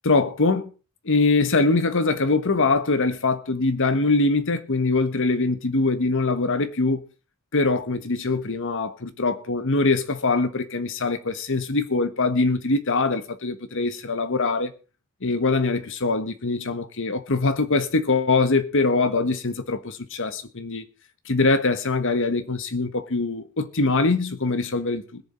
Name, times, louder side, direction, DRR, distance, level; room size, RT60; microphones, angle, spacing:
voice 1, 0.0-0.7 1.0-7.0 7.5-14.7 15.2-20.9 21.3-25.2, left 3 dB, 65° left, 1.3 m, -23 dB
21.0 x 7.1 x 4.3 m
head